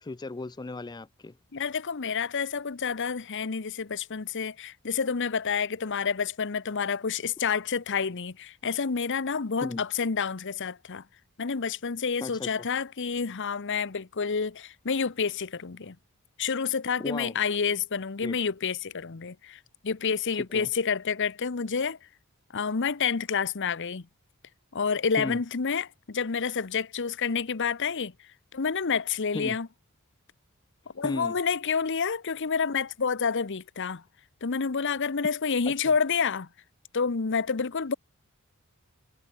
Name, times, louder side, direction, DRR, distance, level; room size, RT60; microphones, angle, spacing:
voice 1, 0.0-1.4 9.6-9.8 12.2-12.7 17.0-17.4 18.2-18.4 20.3-20.7 25.2-25.4 29.3-29.6 31.0-31.4 35.7-35.9, left 2 dB, 20° left, 0.4 m, -36 dB
voice 2, 1.5-11.0 11.4-16.0 16.4-22.0 22.5-24.0 24.7-28.1 28.5-29.7 30.9-34.0 34.4-36.5 36.9-37.9, left 6 dB, 55° left, 0.8 m, -29 dB
head